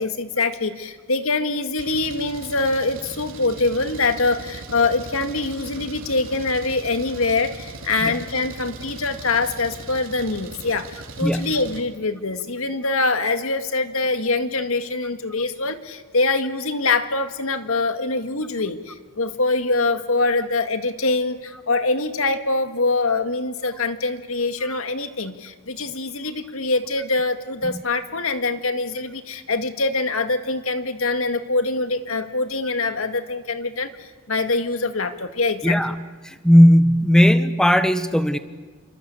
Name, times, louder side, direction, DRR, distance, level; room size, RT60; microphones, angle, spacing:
voice 1, 0.0-35.8, left 3 dB, 70° left, 8 dB, 2.0 m, -24 dB
Engine, 1.8-11.8, right 3 dB, 65° right, 3.4 m, -39 dB
voice 2, 35.6-35.9 36.4-38.4, equal, 5° left, 10 dB, 1.2 m, -15 dB
28.5 x 25.0 x 8.4 m, 1.4 s
head